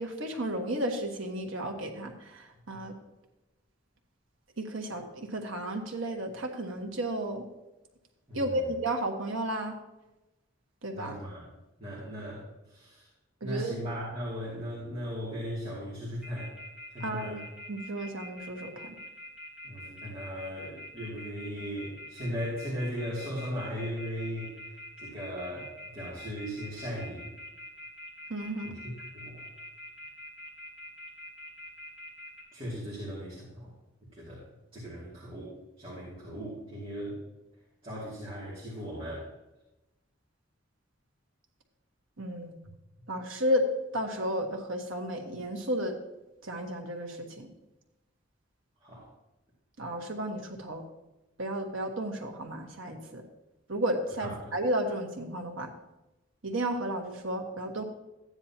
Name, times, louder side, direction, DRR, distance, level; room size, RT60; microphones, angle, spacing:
voice 1, 0.0-2.9 4.6-7.4 8.3-9.7 10.8-11.2 13.4-13.8 17.0-17.4 17.7-19.0 28.3-28.7 42.2-42.6 43.1-43.6 43.9-46.0 46.4-47.5 49.8-50.8 51.4-53.2 53.7-55.7 56.4-57.8, right 1 dB, 80° right, 2 dB, 1.5 m, -33 dB
voice 2, 10.9-11.4 11.8-13.0 13.4-16.5 16.9-17.4 19.6-24.5 25.0-25.7 25.9-27.2 29.1-29.4 32.5-33.7 34.2-34.4 34.7-37.2 37.8-39.3 48.8-49.1 54.4-54.5, equal, 30° right, -7 dB, 2.7 m, -37 dB
sound 1, 16.2-32.4, left 1 dB, 5° right, 3.5 m, -45 dB
14.0 x 9.7 x 2.9 m, 0.98 s
head